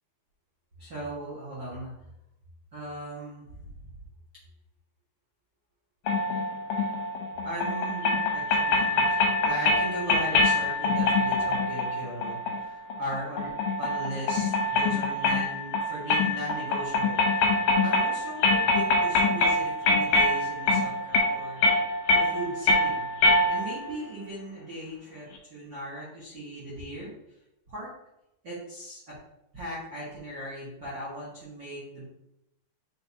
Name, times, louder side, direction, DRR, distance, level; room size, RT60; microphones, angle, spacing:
voice 1, 0.8-1.9 2.7-3.9 7.4-9.1 9.4-13.5 13.8-17.5 17.8-21.6 22.1-23.1 23.5-27.1 27.7-27.9 28.4-29.2 29.5-32.0, right 1 dB, 60° right, -8 dB, 1.1 m, -38 dB
sound 1, 6.1-23.9, left 2 dB, 75° left, 2.1 m, -25 dB
8.7 x 3.9 x 2.8 m, 0.87 s
omnidirectional pair, 5.0 m